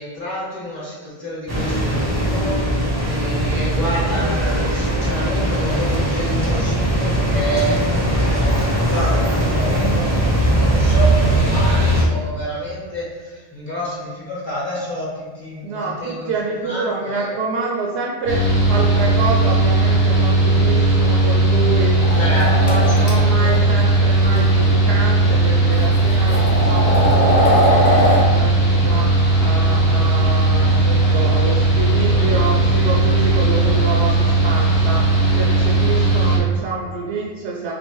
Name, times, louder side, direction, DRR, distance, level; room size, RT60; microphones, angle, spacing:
voice 1, 0.0-16.3 16.6-17.4 22.2-23.6 31.5-31.6 31.9-32.3, equal, 25° left, -8 dB, 1.3 m, -29 dB
sound 1, 1.5-12.0, right 1 dB, 20° right, 0.5 m, -19 dB
voice 2, 15.6-37.7, right 3 dB, 85° right, -3 dB, 0.9 m, -27 dB
Mechanical fan, 18.3-36.4, right 2 dB, 70° left, 1.5 m, -16 dB
sound 2, 22.0-23.1 24.2-24.4 25.3-25.4 25.9-28.2, equal, 45° left, 0.9 m, -19 dB
3.4 x 3.1 x 3.0 m, 1.4 s
omnidirectional pair, 1.1 m